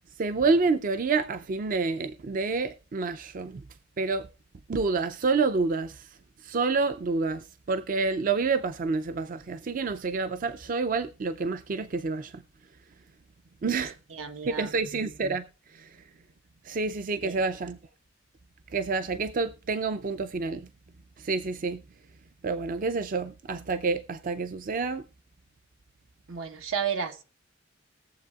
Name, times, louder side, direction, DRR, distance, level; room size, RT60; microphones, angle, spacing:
voice 1, 0.2-3.6 4.0-4.3 4.7-6.0 6.4-12.4 13.6-13.9 14.4-15.4 15.7-15.9 16.7-17.8 18.7-20.7 21.2-21.8 22.4-25.0, right 4 dB, 40° right, 0.4 m, -28 dB
voice 2, 13.8-14.7 17.2-17.4 26.3-27.2, right 7 dB, 85° right, 1.1 m, -33 dB
20.5 x 7.5 x 2.4 m
head